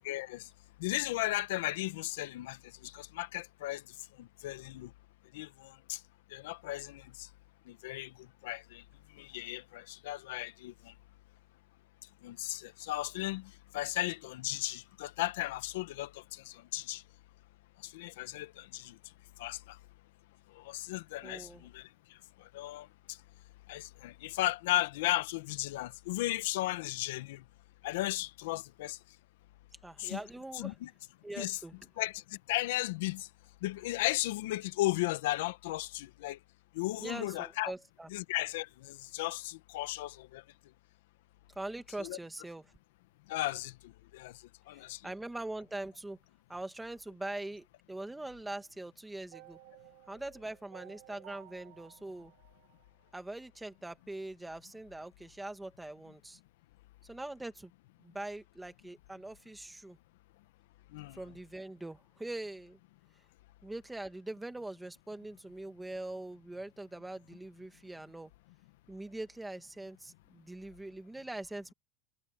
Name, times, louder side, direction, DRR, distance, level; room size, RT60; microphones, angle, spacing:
voice 1, 0.0-0.5 0.8-3.8 4.2-4.9 5.3-6.0 6.3-7.3 7.7-8.8 9.1-10.9 12.2-17.0 17.8-19.0 19.4-19.8 20.5-23.2 23.7-27.4 27.8-29.0 30.0-30.2 30.5-30.9 31.4-31.6 32.0-33.3 33.6-36.4 36.7-37.7 38.1-40.4 42.0-42.2 43.3-44.3 44.7-45.0 60.9-61.2, left 17 dB, 80° left, 1.3 m, -36 dB
voice 2, 21.2-21.7 29.8-30.8 31.2-31.7 37.0-38.1 41.6-42.7 44.7-46.2 46.5-49.6 50.1-52.3 53.1-56.4 57.0-57.7 58.0-60.0 61.1-62.8 63.6-68.3 68.9-71.7, right 2 dB, 5° right, 2.0 m, -43 dB
sound 1, 49.3-53.5, right 20 dB, 60° right, 1.6 m, -56 dB
supercardioid pair, 155°, 0 cm